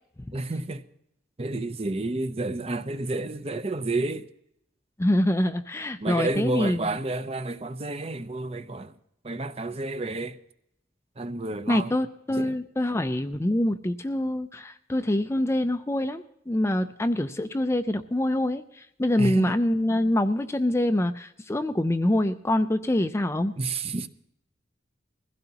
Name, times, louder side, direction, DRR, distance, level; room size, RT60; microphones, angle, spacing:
voice 1, 0.3-0.9 1.4-4.3 6.0-8.9 9.2-10.4 11.2-11.9 12.4-12.6 19.2-19.6 23.6-24.1, right 2 dB, 30° right, 0.7 m, -30 dB
voice 2, 5.0-6.9 11.7-23.5, left 1 dB, 15° left, 0.4 m, -25 dB
21.5 x 16.0 x 2.9 m
head